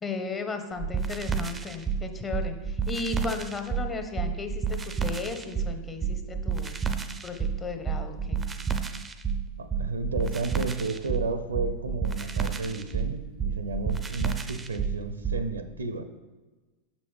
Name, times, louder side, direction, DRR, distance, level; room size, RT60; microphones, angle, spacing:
voice 1, 0.0-6.8 7.2-8.4, left 4 dB, 20° left, 6 dB, 0.7 m, -35 dB
sound 1, 0.8-15.5, right 6 dB, 15° right, 0.4 m, -30 dB
voice 2, 9.6-16.0, right 3 dB, 70° right, 10 dB, 0.5 m, -32 dB
6.9 x 5.2 x 3.3 m, 1.3 s
figure-of-eight pair, 90°, 0 cm